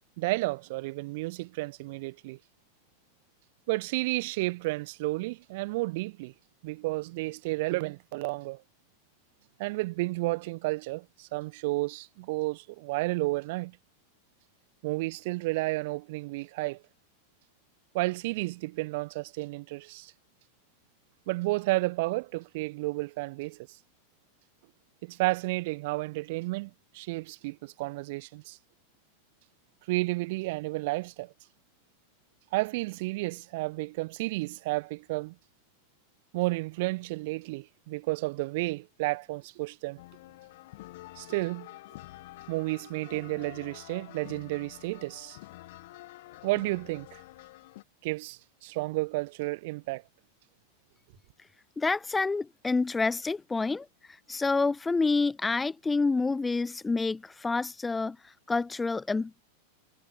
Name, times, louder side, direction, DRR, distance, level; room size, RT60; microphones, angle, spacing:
voice 1, 0.2-2.4 3.7-6.3 6.6-8.6 9.6-13.8 14.8-16.8 17.9-20.1 21.3-23.6 25.0-28.6 29.9-31.3 32.5-35.3 36.3-40.0 41.2-41.7 42.5-45.4 46.4-47.2 48.0-50.0, right 22 dB, 50° right, 1.3 m, -32 dB
sound 1, 40.0-47.8, left 18 dB, 50° left, 1.5 m, -48 dB
voice 2, 51.8-53.9 54.3-59.4, left 3 dB, 10° left, 0.4 m, -28 dB
figure-of-eight pair, 90°, 0 cm